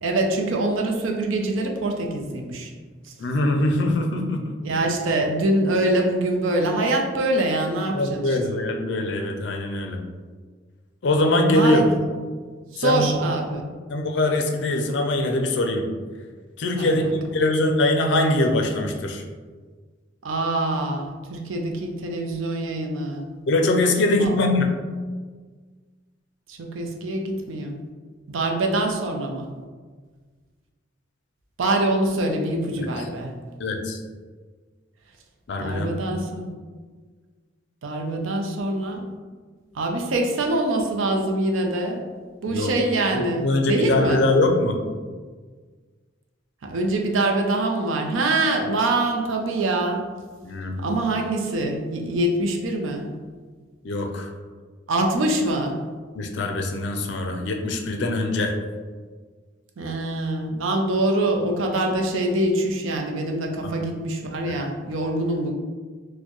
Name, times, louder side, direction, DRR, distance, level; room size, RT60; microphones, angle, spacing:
voice 1, 0.0-2.7 4.6-8.4 11.5-11.9 12.7-13.6 16.7-17.1 20.2-23.2 24.2-24.4 26.5-27.8 28.3-29.5 31.6-33.3 35.6-36.5 37.8-39.1 39.7-42.0 42.4-44.3 46.6-50.0 50.8-53.1 54.9-55.8 59.8-65.5, right 2 dB, 85° right, 2 dB, 0.5 m, -24 dB
voice 2, 3.2-4.6 7.9-10.0 11.0-11.8 12.8-13.1 13.9-15.9 16.6-19.2 23.5-24.7 32.7-32.9 33.6-34.0 35.5-36.2 42.5-42.7 43.1-44.8 50.4-50.8 53.8-54.3 56.1-58.5 63.6-63.7 64.4-64.6, left 2 dB, 60° left, 3 dB, 0.4 m, -22 dB
4.3 x 2.1 x 3.0 m, 1.5 s
head